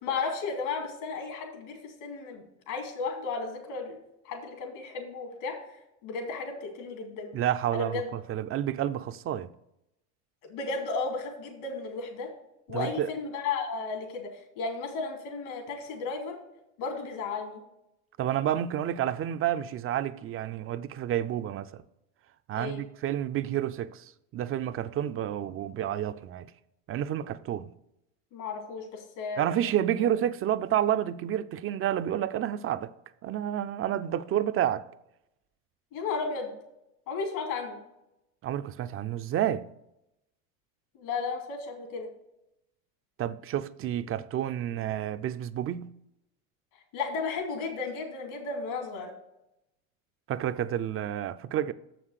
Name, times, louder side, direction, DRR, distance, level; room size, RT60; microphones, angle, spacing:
voice 1, 0.0-4.0 4.2-5.6 6.0-7.3 7.7-8.1 10.4-12.3 12.7-16.4 16.8-17.6 22.5-22.8 28.3-29.4 35.9-36.5 37.1-37.8 40.9-42.1 46.9-49.1, left 4 dB, 65° left, 2.8 m, -34 dB
voice 2, 7.3-9.5 12.7-13.1 18.2-21.8 22.5-26.5 26.9-27.7 29.4-32.9 33.2-34.8 38.4-39.6 43.2-45.9 50.3-51.7, right 11 dB, 35° right, 0.4 m, -30 dB
7.3 x 5.9 x 6.4 m
hypercardioid pair, 85°, 42 cm